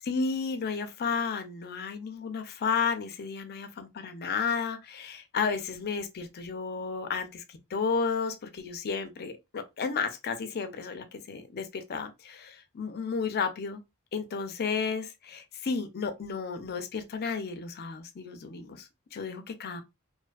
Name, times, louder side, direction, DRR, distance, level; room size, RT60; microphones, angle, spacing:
voice 1, 0.1-13.8 14.1-19.8, left 5 dB, 45° left, 0.4 m, -32 dB
2.5 x 2.3 x 2.4 m
head